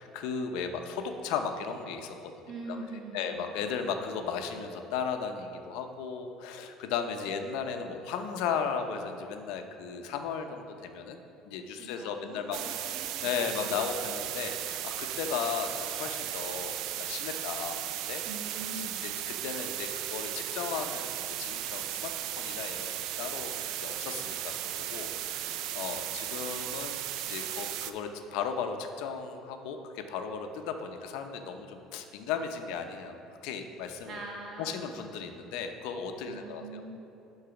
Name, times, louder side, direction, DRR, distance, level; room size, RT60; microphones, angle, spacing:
voice 1, 0.0-2.8 3.1-11.2 11.4-12.6 13.2-18.2 19.0-22.1 22.4-27.0 27.3-34.2 34.6-36.8, left 6 dB, 75° left, 6 dB, 0.7 m, -36 dB
voice 2, 2.5-3.3 11.8-13.7 18.3-19.0 34.1-34.8 36.2-36.9, right 2 dB, 35° right, -1 dB, 1.4 m, -43 dB
sound 1, 12.5-27.9, right 11 dB, 60° right, 0.4 m, -36 dB
10.0 x 4.0 x 5.8 m, 2.9 s
cardioid pair, 160°, 0 cm